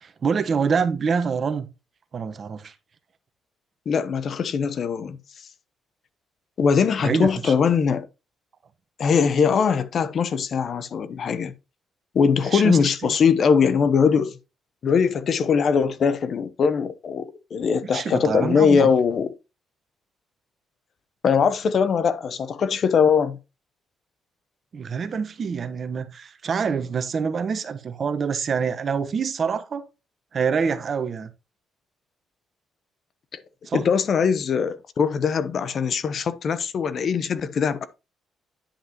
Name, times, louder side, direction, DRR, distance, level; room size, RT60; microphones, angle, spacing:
voice 1, 0.0-1.7 2.1-2.7 7.0-7.5 12.5-12.9 17.9-18.9 24.7-29.9 30.3-31.3 33.7-33.8, right 6 dB, 45° right, 1.1 m, -26 dB
voice 2, 3.9-5.2 6.6-8.1 9.0-11.5 12.1-14.4 14.8-19.3 21.2-23.4 33.7-37.9, left 6 dB, 55° left, 0.8 m, -21 dB
10.0 x 5.7 x 2.9 m
cardioid pair, 90°, 0 cm